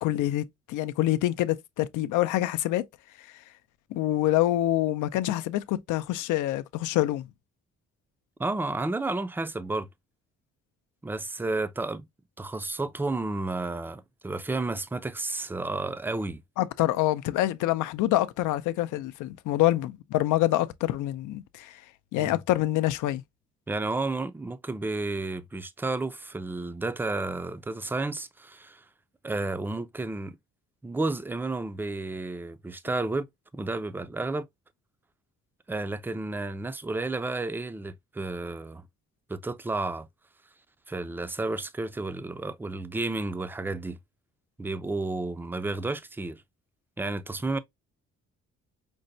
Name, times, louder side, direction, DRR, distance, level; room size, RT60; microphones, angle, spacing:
voice 1, 0.0-2.8 3.9-7.3 16.6-21.8 22.1-23.2, left 15 dB, 85° left, 0.5 m, -26 dB
voice 2, 8.4-9.9 11.0-12.1 12.4-16.4 22.2-22.4 23.7-28.8 29.2-30.4 30.8-33.3 33.5-34.5 35.7-38.8 39.3-40.1 40.9-44.0 44.6-46.4 47.0-47.6, right 2 dB, 5° right, 0.3 m, -31 dB
5.2 x 2.1 x 2.6 m
cardioid pair, 90°, 30 cm